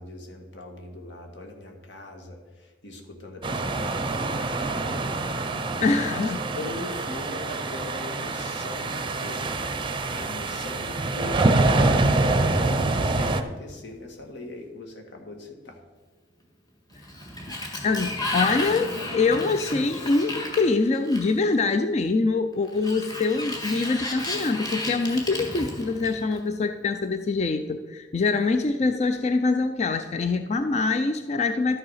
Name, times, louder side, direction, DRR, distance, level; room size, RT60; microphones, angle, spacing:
voice 1, 0.0-9.5 9.8-11.5 11.8-15.8, left 2 dB, 70° left, 3 dB, 1.8 m, -41 dB
sound 1, 3.4-13.4, right 2 dB, 25° right, 0.6 m, -25 dB
voice 2, 5.8-6.4 17.8-31.8, left 3 dB, 35° left, 8 dB, 0.4 m, -24 dB
Sliding door, 16.9-21.5 22.7-26.4, left 2 dB, 20° left, 1.7 m, -33 dB
12.0 x 6.6 x 5.6 m, 1.4 s
head